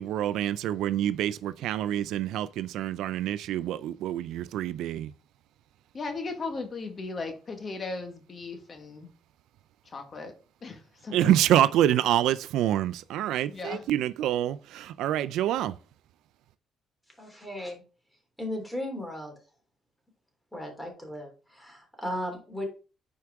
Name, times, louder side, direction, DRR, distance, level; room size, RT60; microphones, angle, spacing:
voice 1, 0.0-5.1 11.1-15.8, right 12 dB, 90° right, 0.4 m, -26 dB
voice 2, 5.9-9.1 9.9-10.3 10.6-11.4 13.5-13.9, left 3 dB, 40° left, 1.7 m, -37 dB
voice 3, 17.2-17.8 18.4-19.3 20.5-22.7, left 1 dB, 5° left, 3.3 m, -36 dB
9.6 x 4.7 x 3.6 m
cardioid pair, 90°, 0 cm